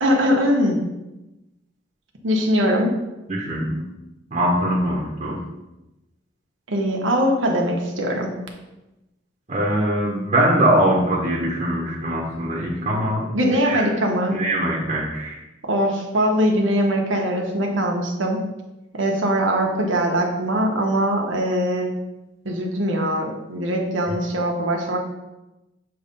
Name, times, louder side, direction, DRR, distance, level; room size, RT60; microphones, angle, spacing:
voice 1, 0.0-0.8 2.2-2.9 6.7-8.3 13.3-14.4 15.6-18.4 18.9-21.9 22.4-25.0, equal, 80° right, 1 dB, 1.1 m, -21 dB
voice 2, 3.3-3.8 4.3-5.4 9.5-13.3 13.6-13.8 14.3-15.4, right 1 dB, 35° right, -3 dB, 1.0 m, -22 dB
6.7 x 3.2 x 5.2 m, 0.98 s
head